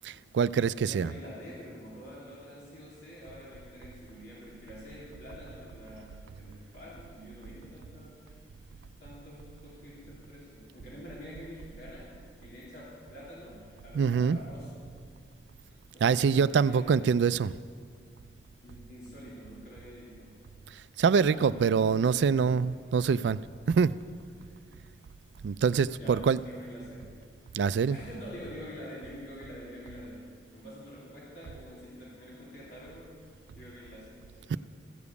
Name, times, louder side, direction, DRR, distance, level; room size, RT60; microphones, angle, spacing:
voice 1, 0.0-1.1 13.9-14.4 16.0-17.5 21.0-23.4 23.7-24.0 25.4-26.4 27.5-28.0 34.5-34.6, right 6 dB, 70° right, 17 dB, 0.3 m, -25 dB
voice 2, 0.6-8.3 9.0-14.7 15.9-17.1 18.6-20.4 21.2-22.4 25.9-27.1 27.9-33.1 33.5-34.6, equal, 65° left, -7 dB, 3.1 m, -47 dB
14.5 x 7.1 x 8.2 m, 2.1 s
head